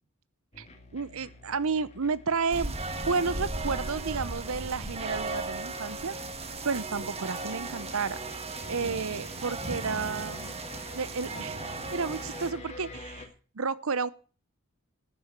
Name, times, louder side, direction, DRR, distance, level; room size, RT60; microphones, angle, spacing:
sound 1, 0.5-13.3, left 2 dB, 30° left, 2.4 m, -47 dB
voice 1, 0.9-2.8 3.1-6.2 6.6-8.2 8.7-10.5 10.9-11.6 11.9-13.3 13.5-14.1, right 5 dB, 70° right, 0.8 m, -31 dB
sound 2, 2.5-12.5, right 3 dB, 30° right, 1.5 m, -36 dB
13.5 x 6.9 x 8.8 m
head